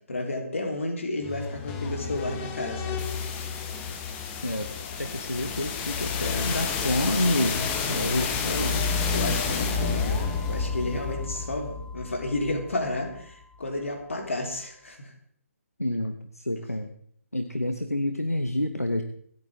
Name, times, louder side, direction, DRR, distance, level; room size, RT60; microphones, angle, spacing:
voice 1, 0.1-3.5 7.8-8.3 9.1-15.1, left 2 dB, 60° left, 2 dB, 3.6 m, -32 dB
sound 1, 1.2-13.1, left 5 dB, 15° left, 1.3 m, -30 dB
voice 2, 5.0-8.9 15.8-16.9 17.3-19.0, left 1 dB, 90° left, 8 dB, 1.1 m, -28 dB
27.0 x 9.3 x 3.6 m, 0.64 s
figure-of-eight pair, 140°, 8 cm